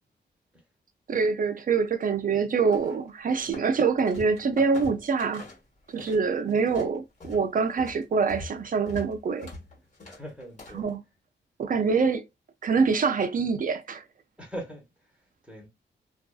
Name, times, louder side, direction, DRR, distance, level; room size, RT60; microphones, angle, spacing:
voice 1, 1.1-5.4 5.9-9.5 10.7-11.0 11.6-12.3 12.6-14.0, right 5 dB, 50° right, 0.4 m, -25 dB
sound 1, 2.7-3.7 4.0-6.2 6.5-10.9, left 2 dB, 40° left, 1.2 m, -43 dB
voice 2, 10.0-10.9 14.4-14.8 15.4-15.7, equal, 5° right, 1.0 m, -40 dB
2.5 x 2.3 x 2.3 m
wide cardioid pair, 125°, 19 cm